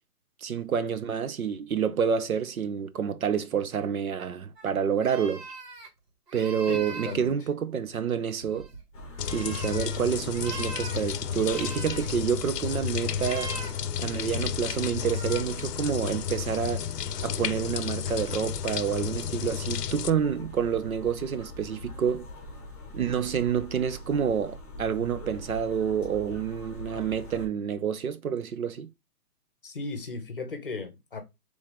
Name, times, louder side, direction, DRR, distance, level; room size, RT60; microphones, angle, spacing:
voice 1, 0.4-5.4 6.3-8.7 9.3-13.5 14.0-16.8 17.2-22.3 22.9-28.9, right 7 dB, 65° right, 0.6 m, -28 dB
sound 1, 4.5-4.7 5.0-5.9 6.3-7.1 7.8-10.0 10.3-11.0 11.3-12.1 13.1-13.7 15.0-15.4, right 3 dB, 85° right, 2.1 m, -41 dB
voice 2, 6.7-7.3 29.6-31.2, left 3 dB, 35° left, 0.8 m, -36 dB
sound 2, 8.9-27.5, left 1 dB, 10° left, 1.0 m, -43 dB
sound 3, 9.2-20.1, left 9 dB, 85° left, 0.6 m, -32 dB
3.8 x 3.3 x 3.4 m
hypercardioid pair, 175°, 47 cm